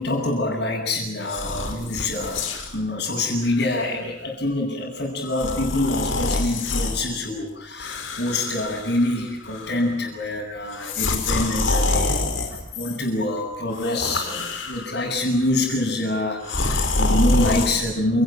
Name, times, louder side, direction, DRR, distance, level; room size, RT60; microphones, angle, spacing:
voice 1, 0.0-18.2, left 2 dB, 55° left, -5 dB, 7.8 m, -26 dB
sound 1, 1.2-2.8 3.5-3.7 5.3-7.0 7.8-9.2 9.5-9.9 10.7-13.0 13.7-15.1 16.4-17.7, left 2 dB, 80° left, 5.3 m, -26 dB
29.5 x 19.5 x 9.3 m, 0.78 s
head